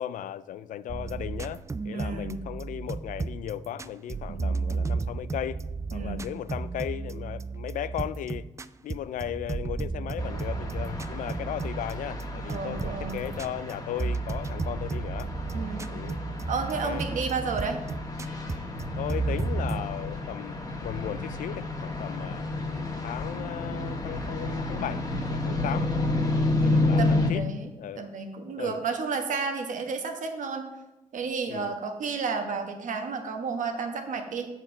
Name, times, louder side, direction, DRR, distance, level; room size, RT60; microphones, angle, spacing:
voice 1, 0.0-5.6 5.9-8.5 8.8-15.3 15.9-16.2 16.8-17.1 19.0-22.5 23.0-25.9 26.7-27.5 27.8-28.1 28.6-28.8 31.5-31.7, left 11 dB, 90° left, 0.4 m, -36 dB
sound 1, 0.9-19.8, right 4 dB, 20° right, 0.4 m, -34 dB
voice 2, 1.9-2.4 4.3-4.5 5.9-6.3 12.5-13.3 15.5-15.8 16.5-17.8 26.6-27.7 28.0-30.7 31.1-34.5, right 5 dB, 80° right, 1.3 m, -32 dB
sound 2, 10.2-27.3, left 2 dB, 30° left, 1.5 m, -31 dB
7.8 x 4.6 x 7.1 m
cardioid pair, 95°, 13 cm